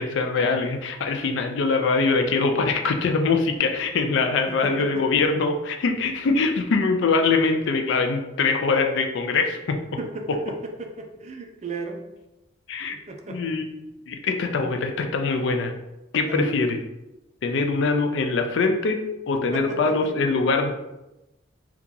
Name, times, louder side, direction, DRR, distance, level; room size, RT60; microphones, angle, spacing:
voice 1, 0.0-9.8 12.7-13.0 13.3-13.7 14.1-15.7 16.1-16.8 17.4-19.0 19.3-20.7, left 4 dB, 65° left, 5 dB, 0.4 m, -23 dB
voice 2, 4.5-5.2 10.0-12.0 12.9-13.4 16.3-16.6 19.5-19.9, right 2 dB, 35° right, 3 dB, 0.4 m, -34 dB
2.8 x 2.3 x 3.7 m, 0.96 s
head